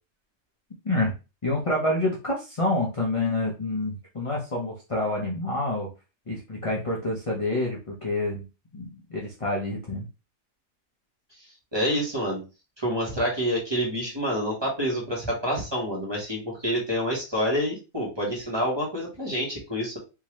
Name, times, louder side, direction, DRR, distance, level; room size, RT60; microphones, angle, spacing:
voice 1, 1.4-5.9 6.3-8.4 8.7-10.1, left 2 dB, 30° left, -3 dB, 0.7 m, -27 dB
voice 2, 11.7-12.4 12.8-20.0, equal, 20° right, -3 dB, 1.4 m, -27 dB
3.7 x 2.7 x 3.1 m, 0.29 s
omnidirectional pair, 1.4 m